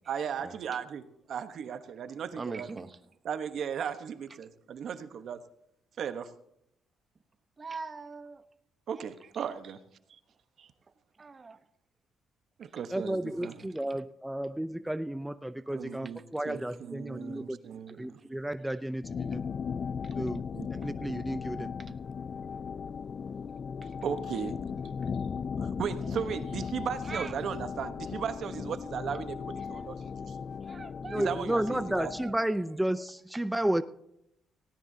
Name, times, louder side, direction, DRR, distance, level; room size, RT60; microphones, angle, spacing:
voice 1, 0.1-2.7 3.2-5.4 6.0-6.3 8.9-9.8 10.1-10.2 10.6-10.7 12.6-13.7 15.7-18.2 20.5-20.7 24.0-24.6 25.6-30.4 31.1-32.1, right 7 dB, 65° right, 10 dB, 1.1 m, -36 dB
voice 2, 2.4-2.9 7.6-8.4 11.2-11.6 27.1-27.3 30.7-31.3 32.2-32.3, right 4 dB, 30° right, 11 dB, 0.9 m, -40 dB
voice 3, 12.9-17.6 18.0-19.4 20.2-20.4 20.7-21.7 31.1-33.8, right 1 dB, 5° right, 12 dB, 0.5 m, -32 dB
sound 1, 19.0-32.4, left 6 dB, 50° left, 0.4 m, -37 dB
18.0 x 17.0 x 2.8 m, 0.77 s
cardioid pair, 90°, 0 cm